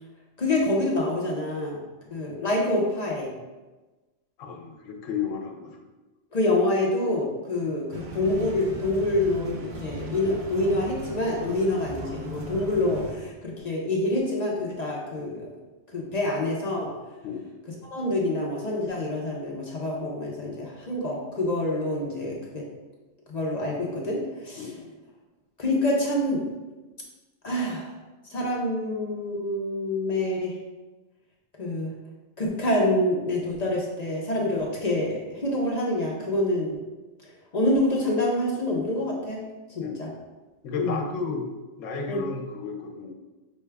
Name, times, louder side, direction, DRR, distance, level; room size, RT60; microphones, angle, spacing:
voice 1, 0.4-1.8 2.1-3.3 6.3-7.9 8.1-15.5 15.9-16.9 17.9-22.6 23.3-24.7 25.6-26.4 27.4-27.9 28.3-30.5 31.6-31.9 32.4-36.8 37.5-39.4 40.0-40.1 40.8-41.0 42.1-42.2, left 1 dB, 45° left, -3 dB, 0.6 m, -26 dB
voice 2, 4.4-5.8 17.2-17.5 24.6-24.9 39.8-40.1 40.6-41.5 41.8-43.1, left 5 dB, 80° left, 2 dB, 1.0 m, -33 dB
sound 1, 7.9-13.1, right 1 dB, 55° right, 0.6 m, -37 dB
5.2 x 2.3 x 3.3 m, 1.2 s
omnidirectional pair, 1.3 m